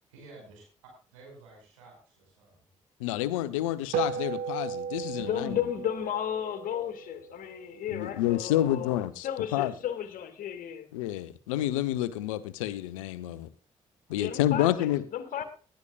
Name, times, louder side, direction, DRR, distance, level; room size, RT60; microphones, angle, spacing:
voice 1, 0.1-0.6 1.1-2.7 14.2-14.4 15.3-15.5, right 3 dB, 80° right, 5.5 m, -52 dB
voice 2, 3.0-5.6 7.9-9.7 10.9-13.5 14.1-15.0, left 13 dB, 75° left, 0.9 m, -29 dB
sound 1, 3.9-8.6, right 7 dB, 60° right, 1.3 m, -36 dB
voice 3, 5.2-9.0 9.2-10.9 14.2-15.4, left 10 dB, 55° left, 2.2 m, -34 dB
19.0 x 11.5 x 2.4 m
figure-of-eight pair, 45°, 17 cm